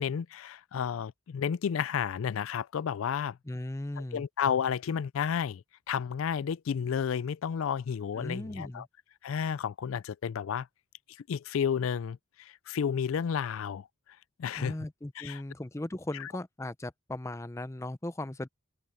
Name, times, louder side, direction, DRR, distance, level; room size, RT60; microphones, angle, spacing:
voice 1, 0.0-3.4 4.0-8.8 9.2-10.7 11.3-13.9 14.4-14.8 15.2-15.4 16.2-16.3, left 7 dB, 75° left, 0.4 m, -32 dB
voice 2, 3.5-4.2 8.2-8.9 14.6-18.5, left 1 dB, 15° left, 0.5 m, -37 dB
open air
head